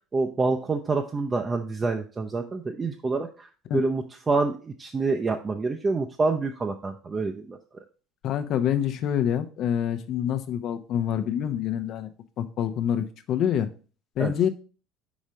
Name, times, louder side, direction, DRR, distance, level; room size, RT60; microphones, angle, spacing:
voice 1, 0.1-7.6 14.2-14.3, right 3 dB, 25° right, 3 dB, 0.6 m, -27 dB
voice 2, 8.2-12.1 12.4-13.7 14.2-14.5, left 9 dB, 50° left, 9 dB, 0.7 m, -26 dB
5.3 x 5.1 x 5.0 m, 0.38 s
figure-of-eight pair, 65°, 0 cm